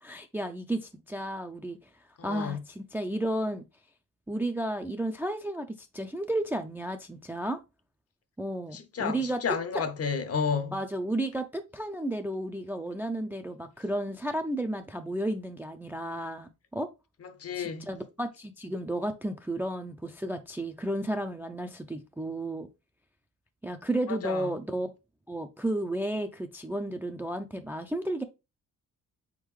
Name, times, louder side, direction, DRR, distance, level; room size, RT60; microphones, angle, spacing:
voice 1, 0.0-1.8 2.2-3.6 4.3-5.7 5.9-7.6 8.4-9.4 10.7-16.9 17.6-22.7 23.6-24.9 25.3-28.2, right 1 dB, 5° right, 0.3 m, -32 dB
voice 2, 2.2-2.6 8.7-10.7 17.2-17.9 24.1-24.5, left 6 dB, 45° left, 0.7 m, -31 dB
4.0 x 3.7 x 3.1 m
cardioid pair, 95°, 33 cm